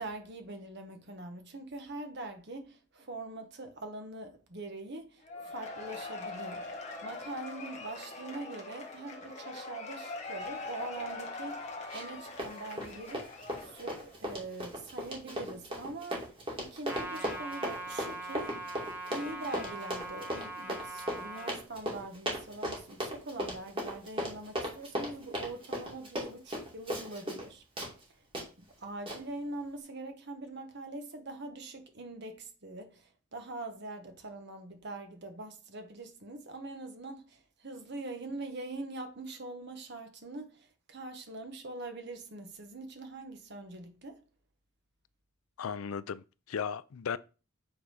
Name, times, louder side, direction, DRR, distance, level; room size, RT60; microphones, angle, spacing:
voice 1, 0.0-16.3 16.6-18.7 19.1-27.6 28.8-44.2, right 2 dB, 55° right, 1.3 m, -43 dB
Cheering / Applause / Crowd, 5.2-14.2, left 3 dB, 35° left, 1.5 m, -42 dB
Run, 11.9-12.1 12.4-27.5 27.8-27.9 28.3-28.5 29.1-29.2, equal, 25° right, 2.4 m, -37 dB
Trumpet, 16.9-21.6, right 2 dB, 10° right, 1.7 m, -41 dB
voice 2, 45.6-47.2, left 6 dB, 85° left, 0.5 m, -36 dB
7.9 x 4.1 x 4.9 m
head